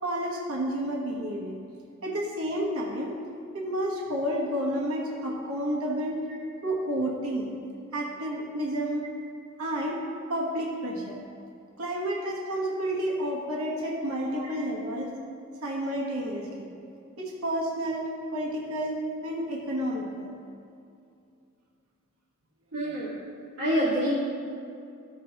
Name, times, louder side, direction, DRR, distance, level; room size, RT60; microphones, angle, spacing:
voice 1, 0.0-1.6 2.0-3.2 3.5-6.2 6.6-7.5 7.9-9.1 9.6-10.0 10.3-11.2 11.8-15.1 15.6-16.7 17.2-20.3, right 1 dB, 80° right, -2 dB, 1.1 m, -30 dB
voice 2, 22.7-23.1 23.6-24.1, equal, 60° right, -11 dB, 2.0 m, -26 dB
14.0 x 6.1 x 2.9 m, 2.5 s
head